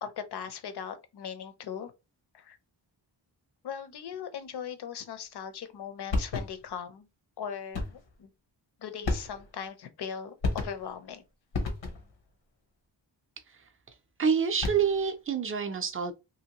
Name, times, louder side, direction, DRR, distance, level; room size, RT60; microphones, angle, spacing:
voice 1, 0.0-1.9 2.3-2.6 3.6-7.1 7.4-8.3 8.8-11.2, left 7 dB, 65° left, 0.6 m, -39 dB
sound 1, 6.1-6.8 7.7-8.1 9.0-9.7 10.4-11.0 11.5-12.2 14.4-15.1, left 3 dB, 90° left, 0.9 m, -32 dB
voice 2, 14.2-16.1, right 6 dB, 30° right, 0.4 m, -27 dB
2.9 x 2.7 x 2.8 m
wide cardioid pair, 170°, 44 cm